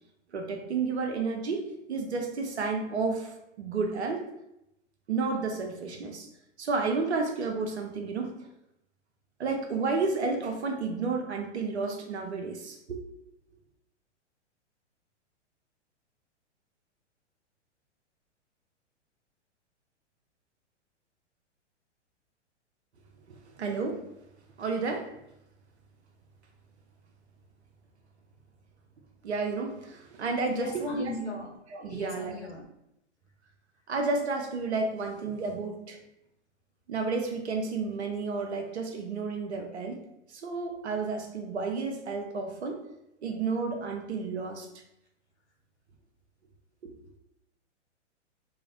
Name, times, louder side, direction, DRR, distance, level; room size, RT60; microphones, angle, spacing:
voice 1, 0.3-4.2 5.1-6.3 6.6-8.4 9.4-13.0 23.6-24.0 24.6-25.1 29.2-31.1 31.7-32.4 33.9-36.0 36.9-40.0 40.3-42.8 43.2-44.7, right 4 dB, 65° right, 3 dB, 0.6 m, -31 dB
voice 2, 30.5-31.5 31.8-32.7, left 2 dB, 70° left, 2 dB, 0.7 m, -38 dB
2.3 x 2.1 x 3.8 m, 0.83 s
figure-of-eight pair, 105°, 36 cm